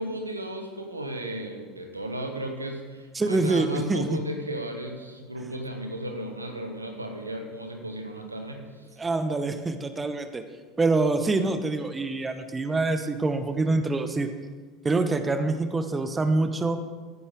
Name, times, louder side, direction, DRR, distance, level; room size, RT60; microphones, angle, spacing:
voice 1, 0.0-8.9, right 1 dB, 85° right, 4 dB, 1.2 m, -35 dB
voice 2, 3.1-4.2 9.0-10.4 10.8-14.3 14.8-16.8, right 3 dB, 20° right, 9 dB, 0.9 m, -25 dB
15.0 x 9.8 x 3.7 m, 1.4 s
figure-of-eight pair, 70°, 0 cm